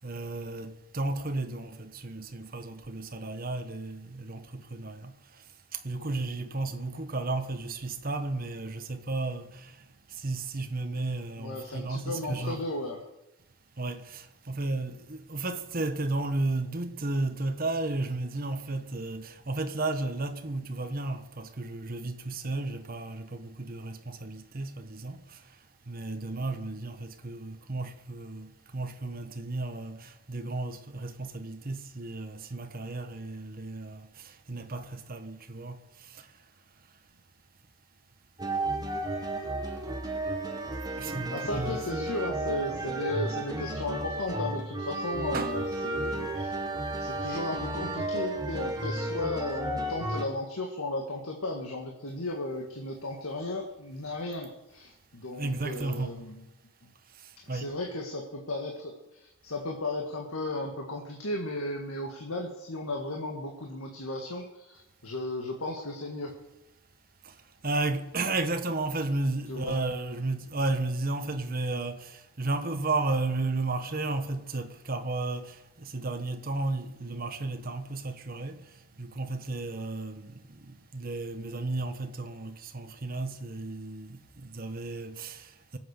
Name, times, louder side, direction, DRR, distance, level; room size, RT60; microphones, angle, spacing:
voice 1, 0.0-5.4 5.7-12.6 13.8-25.4 25.9-36.3 41.0-41.8 45.3-45.5 55.4-56.3 57.2-57.8 67.2-67.3 67.6-85.8, right 2 dB, 40° right, 1.2 m, -33 dB
voice 2, 11.4-13.0 40.9-46.6 47.0-56.4 57.5-66.3 69.5-69.8, left 2 dB, 75° left, 1.8 m, -35 dB
sound 1, 38.4-50.2, right 2 dB, 15° right, 1.5 m, -33 dB
23.5 x 8.2 x 6.7 m
head